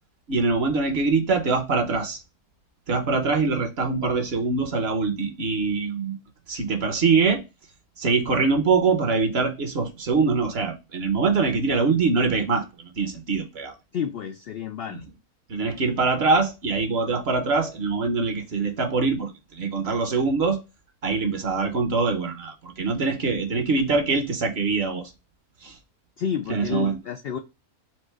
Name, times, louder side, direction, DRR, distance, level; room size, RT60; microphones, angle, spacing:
voice 1, 0.3-2.2 2.9-6.2 6.5-7.4 8.0-13.7 15.5-20.6 21.0-25.1 25.6-25.8 26.5-27.0, right 4 dB, 50° right, 1.0 m, -23 dB
voice 2, 13.9-15.1 26.2-27.4, left 7 dB, 85° left, 0.5 m, -30 dB
4.4 x 2.5 x 4.5 m
omnidirectional pair, 1.6 m